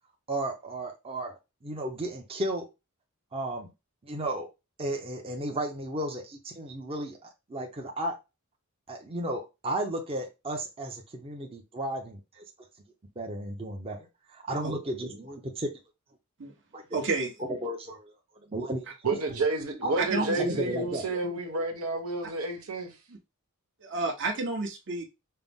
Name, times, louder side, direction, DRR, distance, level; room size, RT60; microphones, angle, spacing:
voice 1, 0.3-2.7 3.3-3.7 4.0-4.5 4.8-8.1 8.9-12.4 13.2-14.0 14.3-15.7 16.7-16.8 17.4-18.1 18.5-18.9 19.8-21.6, right 1 dB, 25° right, 0.7 m, -34 dB
voice 2, 16.9-17.3 20.0-20.4 23.8-25.0, right 3 dB, 55° right, 1.1 m, -30 dB
voice 3, 19.0-22.9, right 3 dB, 85° right, 1.2 m, -30 dB
5.5 x 2.0 x 3.6 m
head